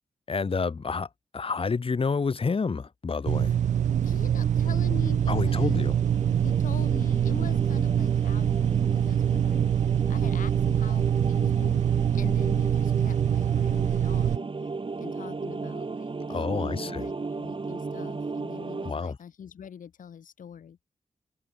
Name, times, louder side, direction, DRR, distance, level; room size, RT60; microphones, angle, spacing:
voice 1, 0.3-1.1 1.3-3.6 5.3-6.0 16.3-17.1 18.8-19.2, left 4 dB, 40° left, 1.1 m, -29 dB
sound 1, 3.3-14.4, right 9 dB, 60° right, 0.4 m, -24 dB
sound 2, 3.8-18.9, right 4 dB, 40° right, 1.8 m, -35 dB
voice 2, 4.0-5.9 6.4-9.7 10.1-14.5 15.0-20.8, left 8 dB, 75° left, 2.4 m, -43 dB
supercardioid pair, 45°, 14 cm